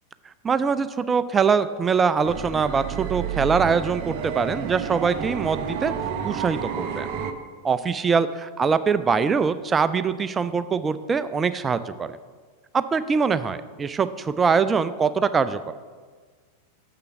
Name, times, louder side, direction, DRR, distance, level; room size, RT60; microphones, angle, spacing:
voice 1, 0.4-5.9 6.2-7.1 7.6-12.2 12.7-15.7, right 5 dB, 20° right, 13 dB, 0.3 m, -23 dB
London Underground - Last Train to Brixton, 2.2-7.3, right 8 dB, 45° right, 0.7 m, -30 dB
6.8 x 6.7 x 6.1 m, 1.5 s
figure-of-eight pair, 90°, 0 cm